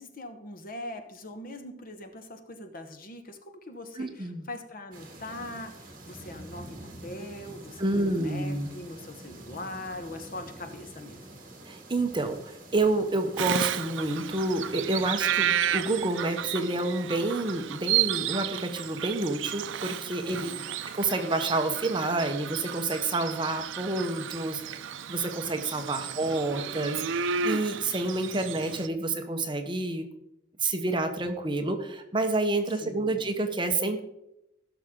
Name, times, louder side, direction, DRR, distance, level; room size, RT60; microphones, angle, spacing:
voice 1, 0.0-11.4 20.2-20.7 25.9-26.3 32.7-33.2, left 1 dB, 50° left, 7 dB, 1.1 m, -42 dB
voice 2, 4.0-4.5 7.8-8.7 11.7-20.5 20.9-24.8 25.1-30.1 30.6-34.0, right 2 dB, 25° right, 5 dB, 0.9 m, -29 dB
sound 1, 4.9-15.1, right 1 dB, 45° right, 2.1 m, -47 dB
Bird vocalization bird call bird song, 13.4-28.9, right 9 dB, 75° right, 0.5 m, -32 dB
16.0 x 6.4 x 3.7 m, 0.85 s
head